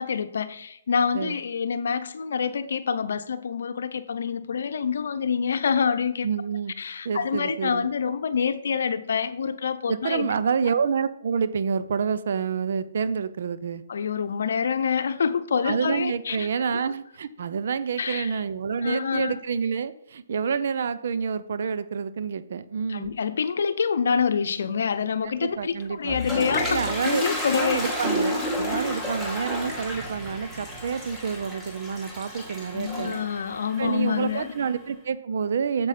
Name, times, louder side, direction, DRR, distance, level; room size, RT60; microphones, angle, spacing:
voice 1, 0.0-6.3 6.8-10.3 13.9-16.5 18.0-18.3 18.8-19.3 22.9-27.8 28.8-29.0 32.7-34.5, left 6 dB, 65° left, 0.7 m, -26 dB
voice 2, 6.2-6.7 7.0-7.9 9.9-13.8 15.6-23.1 25.2-26.2 26.7-27.2 27.5-33.2 33.8-35.9, right 6 dB, 60° right, 0.6 m, -28 dB
Toilet flush, 25.8-34.7, equal, 5° right, 2.2 m, -31 dB
8.0 x 7.1 x 4.3 m
hypercardioid pair, 140°, 0 cm